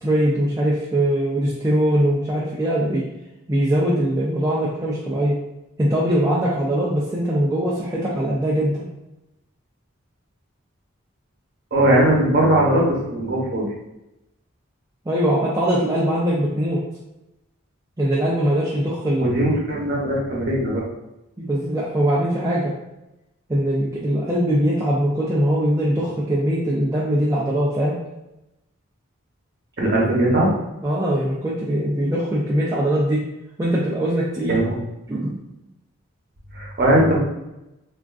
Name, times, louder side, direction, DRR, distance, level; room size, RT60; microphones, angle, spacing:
voice 1, 0.0-3.0 3.5-5.4 5.8-8.8 15.1-16.8 18.0-19.3 21.4-22.7 23.5-27.9 30.8-33.2 33.6-34.6 35.1-35.3, right 1 dB, 15° right, -6 dB, 0.3 m, -21 dB
voice 2, 11.7-13.6 19.2-20.8 29.8-30.5 34.5-34.8 36.5-37.2, right 1 dB, 45° right, -4 dB, 0.8 m, -19 dB
3.5 x 2.4 x 2.3 m, 0.92 s
head